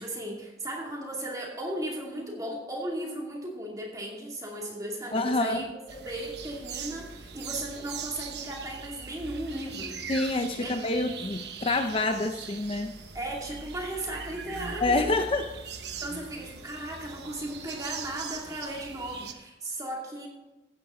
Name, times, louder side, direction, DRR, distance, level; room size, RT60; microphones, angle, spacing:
voice 1, 0.0-10.0 10.6-10.7 13.1-15.1 16.0-20.3, right 1 dB, 20° right, -1 dB, 2.5 m, -36 dB
voice 2, 5.1-5.7 10.1-12.9 14.8-15.4, left 2 dB, 30° left, 6 dB, 0.5 m, -27 dB
sound 1, 5.9-19.3, right 5 dB, 65° right, 1.0 m, -41 dB
15.5 x 8.9 x 3.8 m, 1.1 s
head